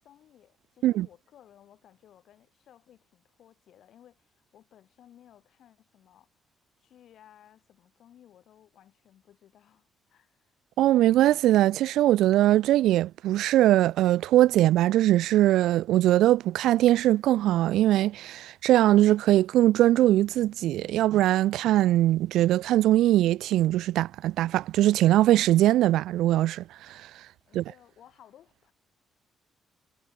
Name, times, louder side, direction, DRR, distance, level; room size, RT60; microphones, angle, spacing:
voice 1, 0.0-6.3 6.8-10.6 27.5-28.7, left 11 dB, 70° left, 5.8 m, -57 dB
voice 2, 10.8-26.6 26.9-27.0 27.5-27.6, right 14 dB, 85° right, 0.3 m, -21 dB
cardioid pair, 90°, 0 cm